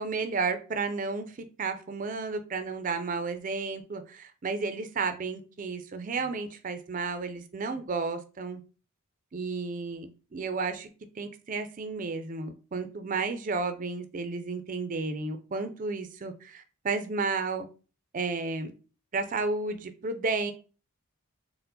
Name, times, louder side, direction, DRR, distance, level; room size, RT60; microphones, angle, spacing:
voice 1, 0.0-8.6 9.3-10.9 11.2-17.7 18.1-18.7 19.1-20.5, right 4 dB, 40° right, 9 dB, 0.4 m, -32 dB
4.4 x 2.1 x 3.8 m, 0.35 s
head